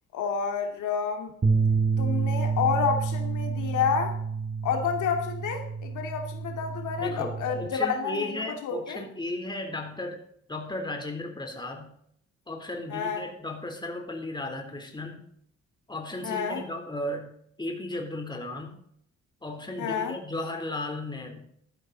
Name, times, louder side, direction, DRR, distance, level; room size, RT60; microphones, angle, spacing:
voice 1, 0.1-1.3 2.0-4.2 4.6-8.3 8.6-9.0 12.9-13.2 16.2-16.6 19.8-20.1, left 6 dB, 80° left, 4 dB, 2.4 m, -29 dB
sound 1, 1.4-7.7, right 5 dB, 35° right, 3.7 m, -28 dB
voice 2, 7.0-10.2 10.5-11.9 12.5-15.3 15.9-17.3 17.6-18.8 19.4-21.5, left 2 dB, 15° left, 3 dB, 3.5 m, -35 dB
14.5 x 13.0 x 4.0 m, 0.69 s
cardioid pair, 90°, 30 cm